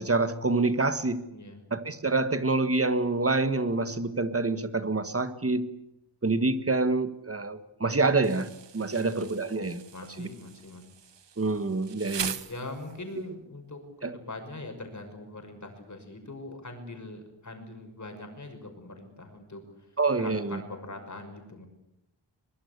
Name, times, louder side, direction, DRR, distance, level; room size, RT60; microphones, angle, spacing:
voice 1, 0.0-1.2 1.7-5.7 6.2-8.5 8.7-9.8 10.2-10.3 11.4-12.4 14.0-14.1 20.0-20.6, right 3 dB, 30° right, 11 dB, 1.6 m, -26 dB
voice 2, 1.3-1.6 8.9-9.2 9.9-10.8 12.5-19.9 20.2-21.7, left 2 dB, 40° left, 5 dB, 6.1 m, -42 dB
Insect, 8.2-13.2, right 7 dB, 70° right, 1.3 m, -41 dB
23.0 x 21.5 x 8.2 m, 0.89 s
wide cardioid pair, 115°, 45 cm